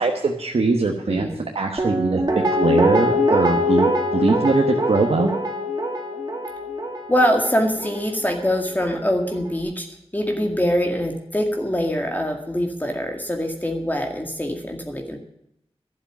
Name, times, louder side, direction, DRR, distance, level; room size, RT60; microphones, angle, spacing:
voice 1, 0.0-2.2 2.5-5.3, right 3 dB, 75° right, 2 dB, 1.3 m, -21 dB
voice 2, 1.1-1.4 7.1-9.9 10.1-15.2, equal, 15° left, 2 dB, 2.0 m, -23 dB
Guitar, 1.8-8.8 9.1-9.2, left 1 dB, 40° right, 2.4 m, -23 dB
12.0 x 7.3 x 9.1 m, 0.77 s
wide cardioid pair, 60°, 10 cm